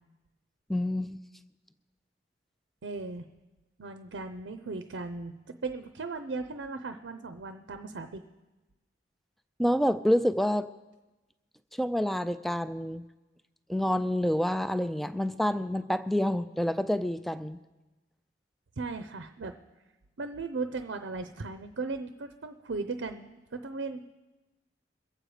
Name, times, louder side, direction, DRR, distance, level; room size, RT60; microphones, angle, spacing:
voice 1, 0.7-1.2 9.6-10.7 11.8-13.0 13.7-17.6, equal, ahead, 12 dB, 0.4 m, -28 dB
voice 2, 2.8-3.2 3.8-5.3 5.6-8.2 18.8-19.5 20.2-24.0, right 3 dB, 80° right, 8 dB, 0.6 m, -37 dB
22.5 x 7.8 x 4.9 m, 1.1 s
head